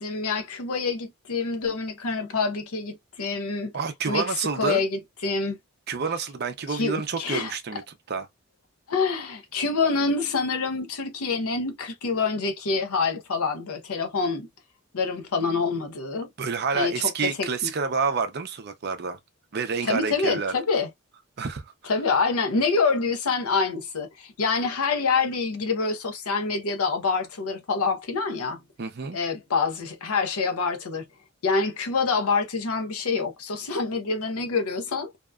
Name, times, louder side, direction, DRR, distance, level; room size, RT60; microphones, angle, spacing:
voice 1, 0.0-3.7 4.1-5.6 6.7-7.5 8.9-14.5 14.9-16.3 16.7-17.7 19.8-20.9 21.8-28.6 29.1-31.1 31.4-35.1, left 4 dB, 85° left, 0.7 m, -26 dB
voice 2, 3.7-4.8 5.9-7.8 8.1-8.3 16.4-19.2 19.5-20.5 21.4-21.7 28.8-29.2, right 5 dB, 45° right, 0.5 m, -28 dB
2.8 x 2.2 x 2.3 m
head